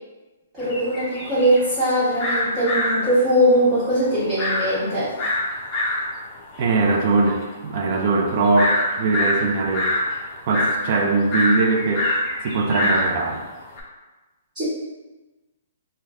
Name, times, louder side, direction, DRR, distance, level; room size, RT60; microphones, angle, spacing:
voice 1, 0.5-5.1 14.5-14.6, equal, 20° right, -15 dB, 1.3 m, -20 dB
sound 1, 0.6-13.8, left 1 dB, 25° left, 0.7 m, -25 dB
voice 2, 6.6-9.9 10.5-12.1 12.4-13.4, right 3 dB, 45° right, 2 dB, 0.4 m, -21 dB
3.1 x 2.2 x 3.6 m, 1.2 s
hypercardioid pair, 155°, 0 cm